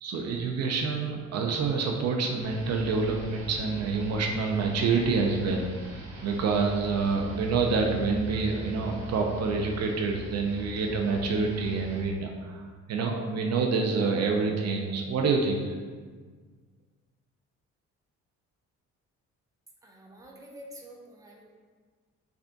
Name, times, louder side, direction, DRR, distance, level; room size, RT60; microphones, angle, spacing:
voice 1, 0.0-15.7, right 4 dB, 60° right, 2 dB, 0.5 m, -27 dB
sound 1, 2.4-12.0, right 1 dB, 75° right, 0.9 m, -41 dB
voice 2, 19.8-21.4, equal, 10° right, -1 dB, 0.6 m, -48 dB
3.3 x 2.4 x 3.8 m, 1.5 s
cardioid pair, 90°, 30 cm